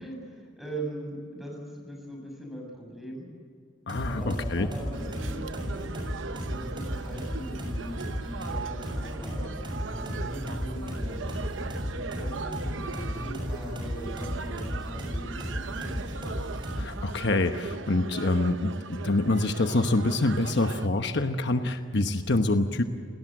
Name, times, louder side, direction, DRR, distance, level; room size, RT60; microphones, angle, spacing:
voice 1, 0.0-3.3 4.1-6.1 6.4-8.0 8.5-11.4 11.9-16.3, right 1 dB, ahead, 0 dB, 7.3 m, -41 dB
voice 2, 3.9-4.7 16.8-22.8, left 2 dB, 65° left, 7 dB, 1.1 m, -26 dB
sound 1, 3.9-17.0, equal, 25° right, 6.7 m, -34 dB
sound 2, 4.9-20.9, right 4 dB, 80° right, 0.9 m, -39 dB
29.0 x 19.0 x 7.8 m, 2.4 s
head